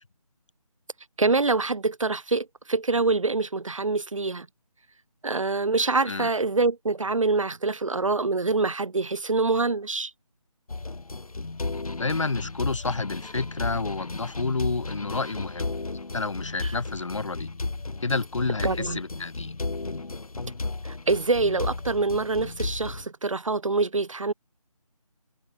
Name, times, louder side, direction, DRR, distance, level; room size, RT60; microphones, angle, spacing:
voice 1, 1.2-4.5 5.2-10.1 16.6-16.7 18.6-19.0 20.9-24.3, right 3 dB, 55° right, 5.3 m, -25 dB
sound 1, 10.7-23.0, left 3 dB, 70° left, 3.6 m, -34 dB
voice 2, 12.0-15.7 16.1-17.5 18.0-19.6, left 3 dB, 55° left, 6.4 m, -29 dB
figure-of-eight pair, 170°, 19 cm